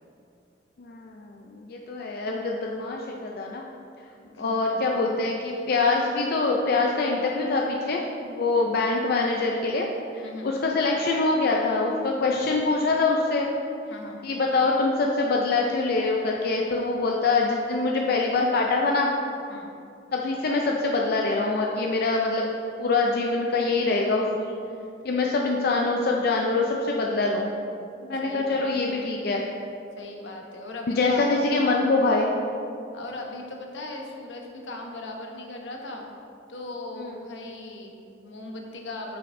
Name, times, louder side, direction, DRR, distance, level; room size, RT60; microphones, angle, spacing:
voice 1, 0.8-3.6 4.4-9.9 10.1-13.5 14.2-19.1 20.1-22.5 22.8-24.5 25.0-27.5 28.0-29.4 30.9-32.3 37.0-37.1, left 3 dB, 60° left, 0 dB, 0.5 m, -24 dB
voice 2, 4.2-5.2 8.5-8.7 10.2-10.5 13.9-14.2 19.5-19.7 28.2-28.9 30.0-31.3 32.9-36.1 36.5-39.2, left 2 dB, 85° left, 1 dB, 0.9 m, -38 dB
9.1 x 5.8 x 2.6 m, 2.6 s
head